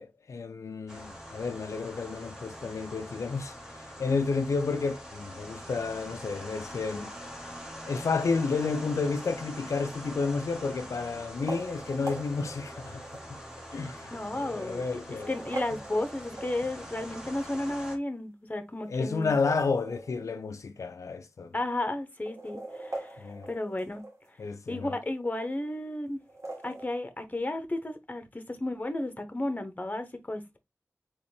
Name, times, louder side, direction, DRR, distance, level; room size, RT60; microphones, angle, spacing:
voice 1, 0.0-7.1 7.9-13.0 13.7-15.3 18.9-21.5 23.2-23.5 24.4-25.0, left 4 dB, 90° left, 0.4 m, -31 dB
sound 1, 0.9-18.0, equal, 10° right, 1.4 m, -44 dB
sound 2, 9.6-10.1 11.3-13.3 14.0-14.1 15.0-16.9 19.1-20.5 20.8-20.9 21.1-21.2 22.1-24.3 26.2-26.9, right 2 dB, 70° right, 1.5 m, -41 dB
voice 2, 14.1-14.8 15.3-19.3 21.5-24.0 24.7-26.2 26.6-30.6, left 1 dB, 30° left, 0.9 m, -33 dB
4.0 x 3.1 x 3.3 m
wide cardioid pair, 65°, 5 cm